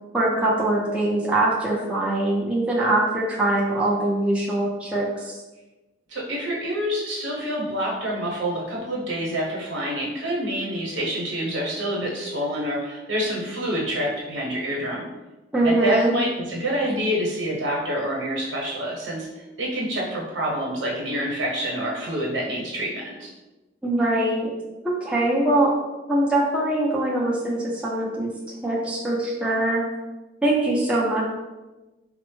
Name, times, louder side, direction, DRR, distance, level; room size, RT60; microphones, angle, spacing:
voice 1, 0.1-5.4 15.5-16.1 23.8-24.5 24.8-25.7 26.1-28.3 28.6-29.8 30.4-31.2, right 1 dB, 5° right, -5 dB, 0.5 m, -22 dB
voice 2, 6.1-15.1 15.6-23.3, equal, 75° right, -3 dB, 1.0 m, -27 dB
4.2 x 2.0 x 3.1 m, 1.1 s
head